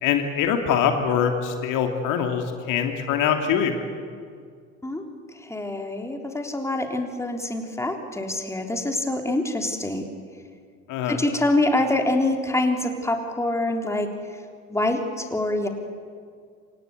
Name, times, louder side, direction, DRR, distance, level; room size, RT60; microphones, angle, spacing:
voice 1, 0.0-3.8 10.9-11.2, left 8 dB, 50° left, 5 dB, 2.8 m, -23 dB
voice 2, 5.3-10.0 11.1-14.1 14.7-15.7, left 2 dB, 5° left, 3 dB, 3.4 m, -25 dB
27.5 x 26.5 x 8.2 m, 2.1 s
figure-of-eight pair, 70°, 41 cm